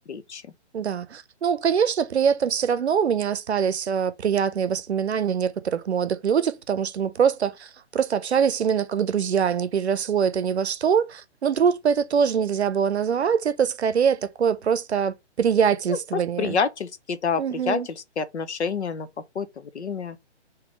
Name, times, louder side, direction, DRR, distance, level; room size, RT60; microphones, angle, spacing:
voice 1, 0.1-0.4 15.9-19.1 19.3-20.2, left 5 dB, 70° left, 0.8 m, -28 dB
voice 2, 0.7-16.6 17.4-17.9, right 7 dB, 70° right, 0.6 m, -23 dB
3.7 x 2.8 x 4.8 m
hypercardioid pair, 175°, 34 cm